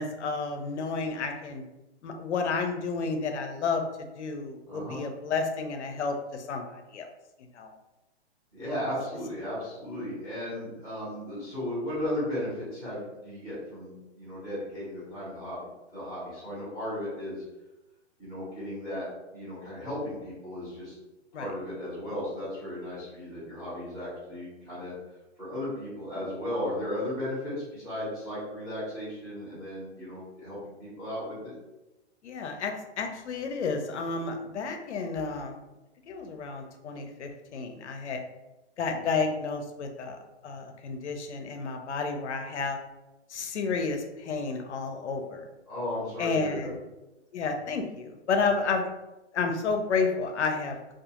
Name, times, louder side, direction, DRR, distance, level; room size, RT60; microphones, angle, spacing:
voice 1, 0.0-1.6 2.0-7.1 7.5-7.7 21.3-21.5 32.2-35.6 36.1-38.2 38.8-42.8 43.3-45.5 46.2-46.8 47.3-48.8 49.3-50.9, left 4 dB, 75° left, 5 dB, 0.6 m, -31 dB
voice 2, 4.7-5.0 8.5-15.6 15.9-17.4 18.2-19.1 19.3-21.0 21.3-24.9 25.4-31.5 45.7-46.7, left 1 dB, ahead, -12 dB, 0.8 m, -35 dB
2.4 x 2.4 x 2.8 m, 1.0 s
hypercardioid pair, 150°, 35 cm